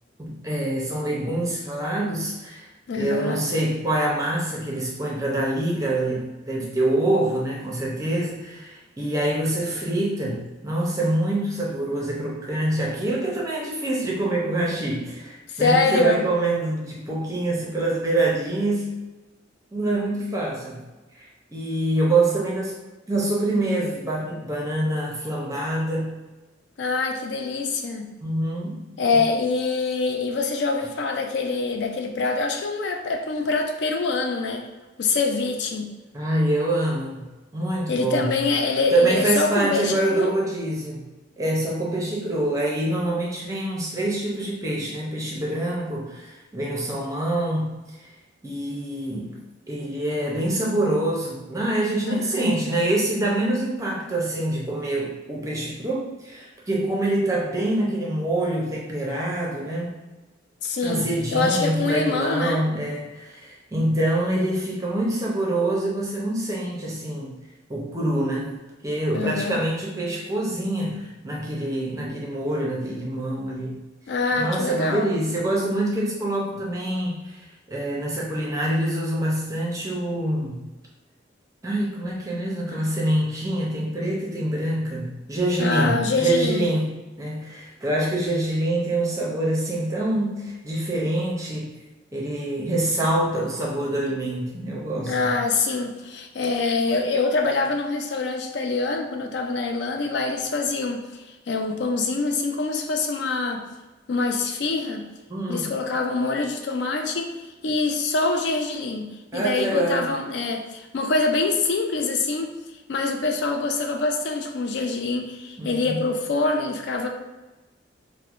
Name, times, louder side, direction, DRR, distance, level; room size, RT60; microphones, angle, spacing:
voice 1, 0.2-2.7 2.9-19.1 19.7-20.8 21.1-22.8 23.1-26.2 28.2-28.7 29.1-29.2 36.1-38.4 38.9-41.0 41.4-47.7 48.4-49.4 49.7-60.0 60.8-67.3 67.7-68.5 68.8-73.8 74.4-80.6 81.6-86.9 87.2-91.7 92.1-95.3 105.3-105.7 109.3-110.1 115.6-116.0, right 1 dB, 15° right, -3 dB, 0.6 m, -25 dB
voice 2, 2.9-3.4 15.5-16.2 26.8-28.1 29.0-34.7 35.0-35.9 37.9-40.3 52.1-52.5 60.6-62.6 69.1-69.6 74.1-75.2 85.6-86.7 95.0-103.6 104.1-105.1 105.5-107.3 107.6-112.5 112.9-117.1, left 3 dB, 60° left, 4 dB, 0.4 m, -25 dB
4.4 x 2.1 x 2.5 m, 1.1 s
head